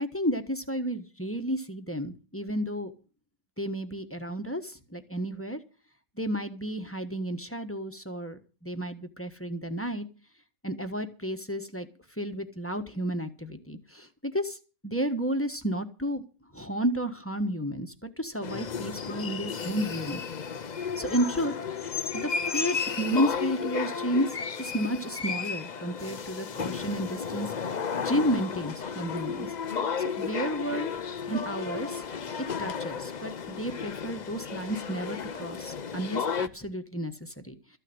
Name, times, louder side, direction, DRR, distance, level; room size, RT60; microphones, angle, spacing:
voice 1, 0.0-2.9 3.6-5.6 6.2-10.1 10.6-11.9 12.2-14.6 14.8-16.2 16.5-20.2 21.0-21.5 22.1-27.7 28.0-30.9 31.3-32.0 32.6-37.6, equal, 10° left, 6 dB, 1.2 m, -32 dB
sound 1, 18.4-36.5, left 6 dB, 40° left, 0.7 m, -33 dB
14.0 x 6.6 x 9.6 m, 0.35 s
omnidirectional pair, 1.5 m